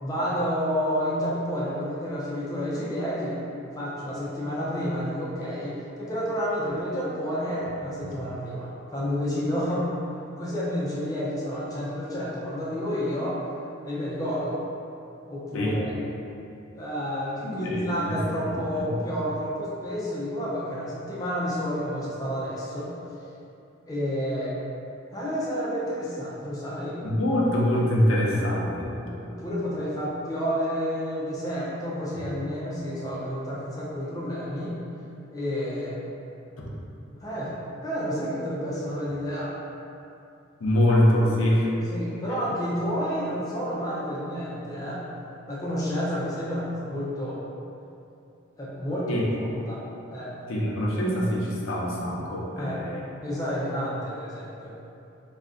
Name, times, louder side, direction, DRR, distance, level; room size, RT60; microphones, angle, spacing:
voice 1, 0.0-3.4 3.8-9.9 10.4-13.4 13.8-14.6 15.3-15.9 16.7-22.9 23.9-24.6 25.1-27.0 29.2-34.8 35.3-36.0 37.2-37.5 37.8-39.5 41.9-45.0 45.5-47.4 48.6-50.3 52.6-52.8 53.2-54.8, equal, 15° left, -7 dB, 0.3 m, -30 dB
voice 2, 17.4-19.0 27.0-28.9 40.6-41.7 49.1-49.3 50.5-53.0, left 1 dB, 85° left, -4 dB, 0.5 m, -24 dB
2.4 x 2.1 x 3.5 m, 2.7 s
head